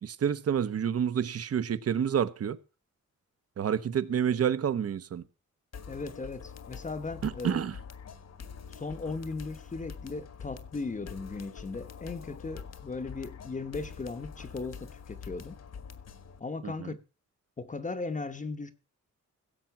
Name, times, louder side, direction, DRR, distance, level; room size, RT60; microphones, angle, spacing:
voice 1, 0.0-2.6 3.6-5.2 7.2-7.8 16.6-16.9, right 8 dB, 55° right, 0.9 m, -29 dB
sound 1, 5.7-16.4, left 6 dB, 60° left, 1.4 m, -45 dB
voice 2, 5.9-7.6 8.7-15.6 16.4-17.0 17.6-18.7, left 3 dB, 25° left, 0.9 m, -37 dB
16.0 x 7.6 x 5.7 m
wide cardioid pair, 130°, 30 cm